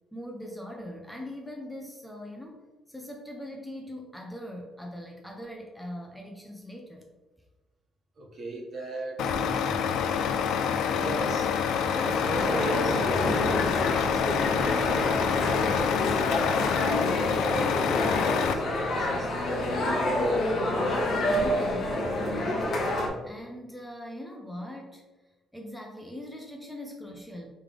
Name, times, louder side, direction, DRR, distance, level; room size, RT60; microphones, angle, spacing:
voice 1, 0.1-2.6 2.9-7.1 21.1-25.0 25.5-27.5, left 1 dB, 5° left, 1 dB, 0.6 m, -41 dB
voice 2, 8.2-10.0 10.8-11.5 11.9-19.3, equal, 50° right, -3 dB, 1.3 m, -37 dB
Truck, 9.2-18.5, left 7 dB, 85° left, 0.3 m, -27 dB
sound 1, 12.3-23.1, left 1 dB, 60° left, 0.9 m, -28 dB
3.3 x 3.2 x 3.7 m, 1.2 s
cardioid pair, 90°, 0 cm